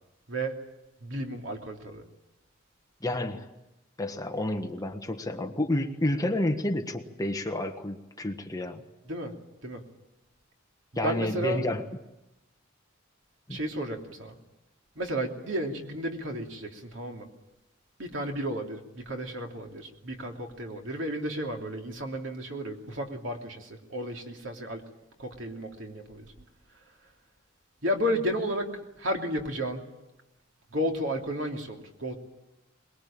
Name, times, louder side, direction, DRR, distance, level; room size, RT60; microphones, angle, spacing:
voice 1, 1.0-2.0 9.1-9.3 9.6-9.8 11.0-11.6 13.5-14.4 15.0-17.3 18.0-24.8 25.2-26.2 27.8-28.7 29.0-29.8 30.7-32.2, equal, 70° right, 2 dB, 2.9 m, -32 dB
voice 2, 3.0-3.5 4.0-8.8 11.0-11.8 13.5-13.6, left 1 dB, 20° left, 5 dB, 1.4 m, -30 dB
22.5 x 21.5 x 8.8 m, 0.95 s
head